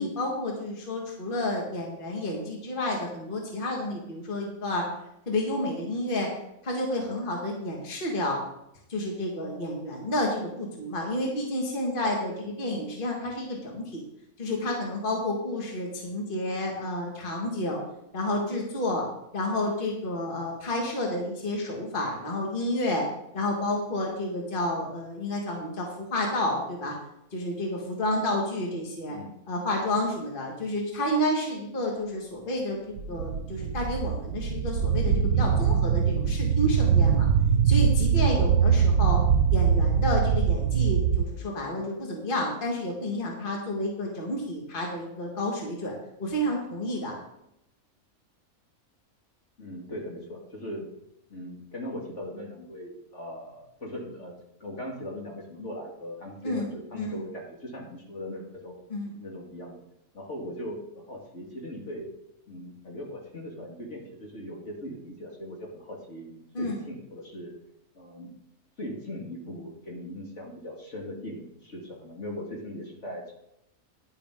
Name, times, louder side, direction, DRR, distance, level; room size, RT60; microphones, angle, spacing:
voice 1, 0.0-4.8 5.3-6.3 6.6-8.4 8.9-14.0 14.4-17.8 18.1-19.0 19.3-23.1 23.3-26.9 27.3-29.2 29.5-37.3 37.6-39.2 39.5-47.2 56.4-56.7 57.0-57.2 58.9-59.1 66.5-66.8, left 1 dB, 35° left, -1 dB, 1.9 m, -30 dB
sound 1, 33.0-41.3, right 7 dB, 90° right, 1.2 m, -23 dB
voice 2, 49.6-50.9 51.3-58.8 59.2-59.8 60.1-62.1 62.5-67.5 68.0-68.3 68.8-73.3, left 1 dB, 50° left, -1 dB, 2.3 m, -39 dB
10.5 x 9.9 x 3.7 m, 0.81 s
omnidirectional pair, 1.6 m